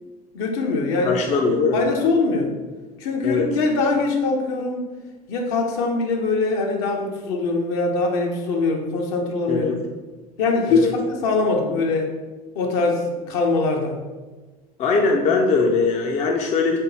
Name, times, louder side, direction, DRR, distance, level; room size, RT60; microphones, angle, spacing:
voice 1, 0.3-1.2 1.7-2.5 3.0-4.8 5.3-9.8 10.4-12.1 12.5-14.0, left 3 dB, 60° left, 1 dB, 0.7 m, -22 dB
voice 2, 1.0-1.8 3.2-3.5 9.5-9.7 10.7-10.9 14.8-16.8, left 4 dB, 35° left, 1 dB, 0.5 m, -20 dB
3.6 x 3.5 x 2.8 m, 1.3 s
hypercardioid pair, 70°, 20 cm